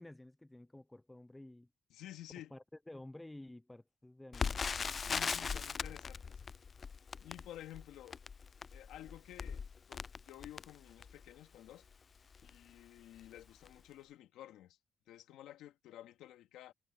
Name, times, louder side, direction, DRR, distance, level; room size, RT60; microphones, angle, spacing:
voice 1, 0.0-1.7 2.4-4.7, left 1 dB, 10° left, 0.8 m, -52 dB
voice 2, 1.9-2.5 5.0-6.4 7.2-8.2 8.7-11.9 12.4-14.8 15.1-16.7, left 13 dB, 90° left, 2.4 m, -52 dB
Crackle, 4.3-11.3 11.9-12.0 12.3-12.6 13.2-13.4 13.7-13.8, left 5 dB, 40° left, 0.3 m, -40 dB
cardioid pair, 90°, 0 cm